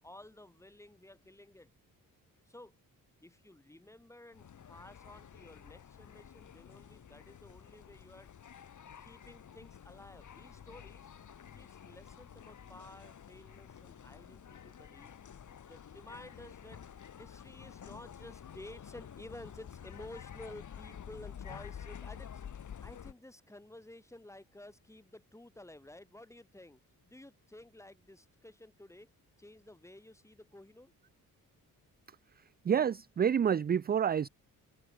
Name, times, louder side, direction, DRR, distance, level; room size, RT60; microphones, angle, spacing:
voice 1, 0.0-1.7 2.5-2.7 3.2-8.3 9.0-11.1 11.5-15.1 15.6-16.8 17.2-22.3 22.8-29.1 29.4-30.9, left 1 dB, 10° left, 6.0 m, -53 dB
sound 1, 4.3-23.1, left 8 dB, 60° left, 7.9 m, -50 dB
voice 2, 32.7-34.3, right 8 dB, 30° right, 0.4 m, -28 dB
open air
wide cardioid pair, 150°, 35 cm